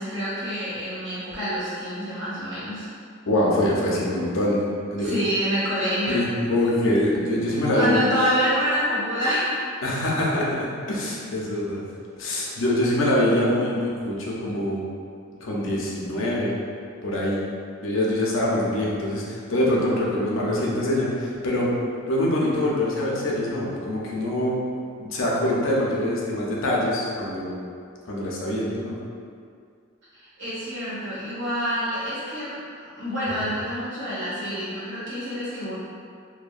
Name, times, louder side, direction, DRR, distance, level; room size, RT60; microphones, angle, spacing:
voice 1, 0.0-2.8 5.0-6.2 7.6-9.6 30.1-35.8, equal, 90° right, -11 dB, 1.3 m, -27 dB
voice 2, 3.3-4.6 4.9-5.2 6.1-8.0 9.8-11.8 12.2-14.9 15.4-16.5 17.0-17.4 17.8-21.7 22.1-24.6 25.0-27.6 28.0-29.0 33.4-33.5, left 1 dB, 80° left, -4 dB, 0.5 m, -24 dB
2.7 x 2.1 x 2.4 m, 2.3 s
head